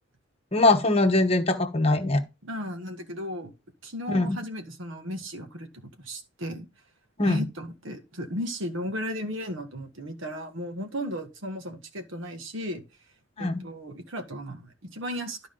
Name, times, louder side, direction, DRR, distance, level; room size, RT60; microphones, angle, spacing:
voice 1, 0.5-2.2 4.1-4.4 7.2-7.4 13.4-13.6, left 2 dB, 30° left, 1.0 m, -22 dB
voice 2, 2.4-3.5 3.8-6.7 7.2-12.8 13.4-15.5, equal, 85° right, 1.5 m, -35 dB
12.0 x 4.8 x 3.8 m
head